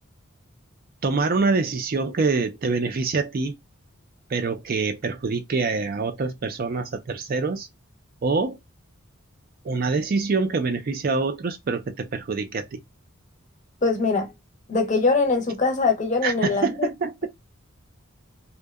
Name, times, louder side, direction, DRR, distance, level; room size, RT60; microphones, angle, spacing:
voice 1, 1.0-3.5 4.3-7.7 8.2-8.6 9.6-12.8 16.2-17.3, right 4 dB, 45° right, 0.4 m, -25 dB
voice 2, 13.8-14.3 14.7-16.9, left 4 dB, 35° left, 0.6 m, -22 dB
2.7 x 2.1 x 2.2 m
head